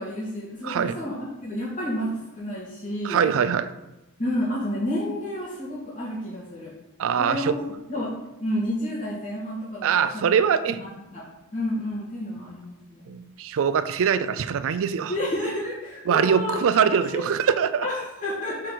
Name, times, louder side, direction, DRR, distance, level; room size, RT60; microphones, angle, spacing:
voice 1, 0.0-3.2 4.2-6.7 7.2-7.6 7.9-10.2 10.8-11.2 11.5-13.1 15.1-17.3 17.8-18.7, left 1 dB, 35° left, -11 dB, 2.0 m, -30 dB
voice 2, 0.6-1.0 3.0-3.7 7.0-7.6 9.8-10.8 13.1-15.1 16.1-17.9, right 7 dB, 65° right, 12 dB, 0.4 m, -23 dB
4.9 x 4.5 x 5.8 m, 0.99 s
head